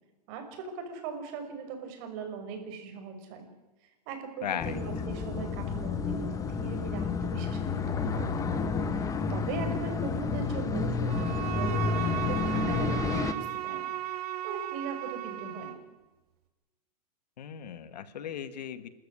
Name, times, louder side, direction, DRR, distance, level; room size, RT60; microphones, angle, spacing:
voice 1, 0.3-3.5 3.8-15.7, right 5 dB, 45° right, 5 dB, 6.3 m, -40 dB
voice 2, 4.4-4.8 17.4-18.9, left 9 dB, 85° left, 13 dB, 1.9 m, -37 dB
sound 1, 4.6-13.3, left 4 dB, 15° left, 1.4 m, -30 dB
Bowed string instrument, 11.1-15.9, right 12 dB, 65° right, 3.0 m, -36 dB
28.5 x 13.5 x 9.9 m, 1.1 s
supercardioid pair, 140°, 21 cm